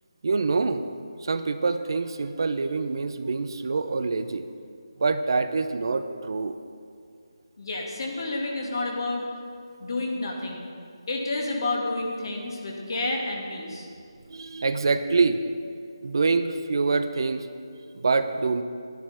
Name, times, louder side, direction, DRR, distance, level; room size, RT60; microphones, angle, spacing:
voice 1, 0.2-0.9 1.2-4.5 5.0-6.6 14.3-15.4 16.0-17.5 17.9-18.6, right 4 dB, 55° right, 10 dB, 0.6 m, -25 dB
voice 2, 7.6-9.2 9.8-10.7 11.1-13.9, left 2 dB, 50° left, -1 dB, 2.0 m, -30 dB
11.5 x 10.5 x 4.3 m, 2.3 s
figure-of-eight pair, 160°, 3 cm